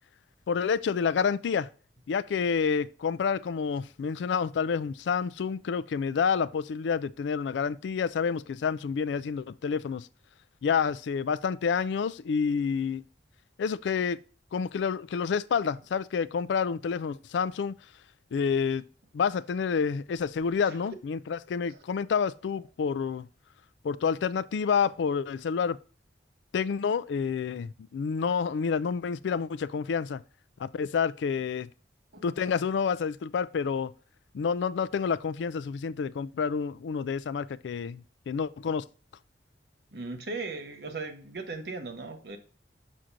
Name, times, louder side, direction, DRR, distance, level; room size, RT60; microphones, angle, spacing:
voice 1, 0.5-1.7 2.1-10.1 10.6-13.1 13.6-14.2 14.5-17.8 18.3-18.9 19.1-23.3 23.8-25.8 26.5-30.2 30.6-31.7 32.2-33.9 34.3-38.8, left 6 dB, 90° left, 0.3 m, -29 dB
voice 2, 39.9-42.4, right 3 dB, 65° right, 1.1 m, -38 dB
6.2 x 5.9 x 2.5 m
head